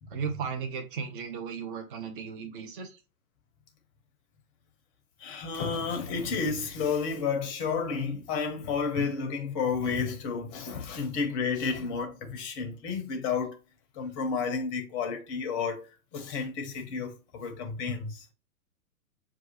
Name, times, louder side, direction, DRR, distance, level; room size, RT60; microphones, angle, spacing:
voice 1, 0.1-3.0, right 6 dB, 35° right, 0.6 m, -35 dB
voice 2, 5.2-13.6 13.9-18.3, left 5 dB, 20° left, 0.6 m, -31 dB
5.9 x 2.4 x 2.8 m
figure-of-eight pair, 115°, 46 cm